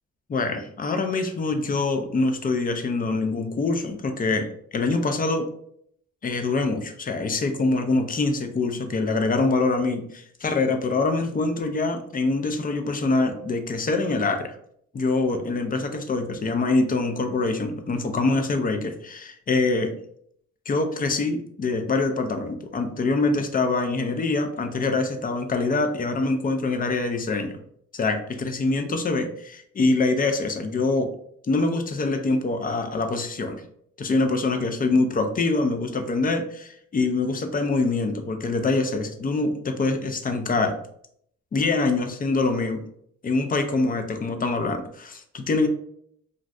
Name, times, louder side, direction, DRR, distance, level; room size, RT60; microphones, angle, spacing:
voice 1, 0.3-5.5 6.2-14.6 14.9-19.9 20.7-27.5 27.9-31.1 31.4-33.6 34.0-40.7 41.5-42.8 43.2-45.7, left 3 dB, 30° left, 6 dB, 0.5 m, -24 dB
2.6 x 2.4 x 3.2 m, 0.68 s
cardioid pair, 90°, 30 cm